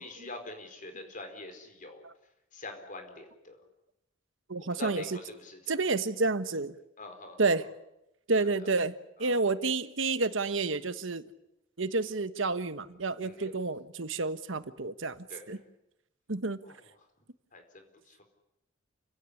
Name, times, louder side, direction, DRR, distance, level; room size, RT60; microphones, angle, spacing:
voice 1, 0.0-2.1 2.5-3.6 4.8-5.8 7.0-7.5 8.4-8.5 9.2-9.4 13.2-13.5 15.3-15.5 16.6-16.7 17.5-18.2, left 2 dB, 40° left, 6 dB, 4.6 m, -45 dB
voice 2, 4.5-5.2 5.7-6.8 7.4-7.7 8.3-8.9 9.2-11.2 11.8-15.6 16.3-16.6, right 3 dB, 70° right, 12 dB, 1.3 m, -30 dB
29.0 x 17.0 x 10.0 m, 0.88 s
head